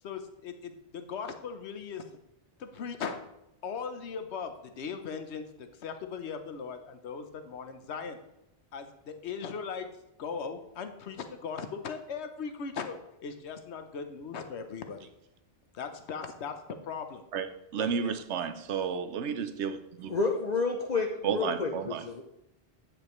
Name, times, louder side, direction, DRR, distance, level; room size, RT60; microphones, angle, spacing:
voice 1, 0.0-2.0 2.6-3.2 3.6-8.2 8.7-9.9 10.2-15.1 15.7-17.2 17.8-18.2, left 6 dB, 75° left, 8 dB, 1.1 m, -39 dB
voice 2, 17.7-20.1 21.2-22.1, right 7 dB, 80° right, 11 dB, 1.0 m, -32 dB
voice 3, 20.1-22.2, left 4 dB, 45° left, 2 dB, 0.7 m, -30 dB
8.7 x 7.9 x 3.1 m, 0.84 s
omnidirectional pair, 1.1 m